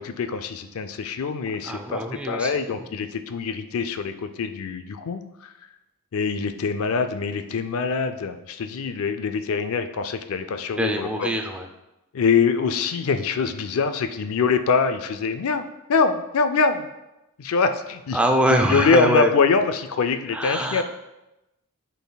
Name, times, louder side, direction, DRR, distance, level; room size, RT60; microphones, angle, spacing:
voice 1, 0.0-5.5 6.1-11.3 12.1-16.9 17.4-18.2 18.5-20.8, left 5 dB, 70° left, 8 dB, 0.4 m, -24 dB
voice 2, 1.6-2.5 10.8-11.7 18.1-19.3 20.3-20.8, right 1 dB, 5° right, 3 dB, 0.4 m, -23 dB
9.9 x 4.2 x 2.3 m, 0.95 s
head